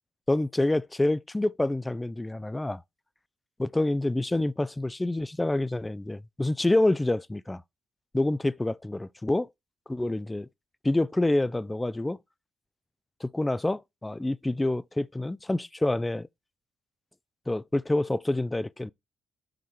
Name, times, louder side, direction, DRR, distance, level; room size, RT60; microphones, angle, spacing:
voice 1, 0.3-2.8 3.6-7.6 8.1-9.5 9.9-10.5 10.8-12.2 13.2-16.3 17.5-18.9, left 2 dB, 15° left, 0.4 m, -27 dB
5.9 x 4.8 x 4.6 m
hypercardioid pair, 50°, 0 cm